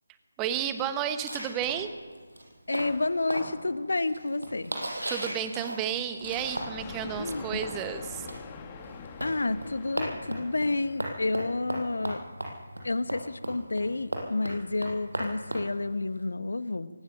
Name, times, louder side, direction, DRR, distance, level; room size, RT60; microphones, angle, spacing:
voice 1, 0.4-1.9 5.1-8.3, right 9 dB, 15° right, 10 dB, 1.1 m, -32 dB
sound 1, 1.2-6.9 7.2-16.2, right 1 dB, 70° right, 6.2 m, -37 dB
voice 2, 2.7-4.7 7.2-7.4 9.2-12.3 12.8-16.9, left 2 dB, 60° left, 14 dB, 1.1 m, -30 dB
Thunder, 6.2-11.6, left 5 dB, 20° left, 1.7 m, -44 dB
23.0 x 19.0 x 6.3 m, 1.5 s
figure-of-eight pair, 155°, 0 cm